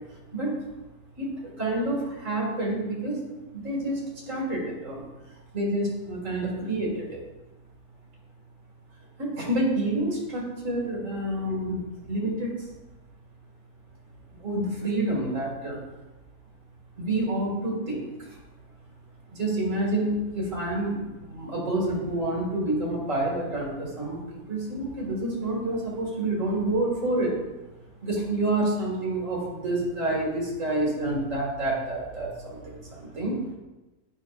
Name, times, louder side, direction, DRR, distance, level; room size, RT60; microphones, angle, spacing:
voice 1, 1.2-3.1 3.5-5.0 5.3-7.2 9.2-12.7 14.4-15.8 17.0-18.4 19.3-27.3 28.0-33.4, right 1 dB, 50° right, -3 dB, 2.3 m, -28 dB
8.7 x 5.6 x 2.4 m, 1.1 s
omnidirectional pair, 1.8 m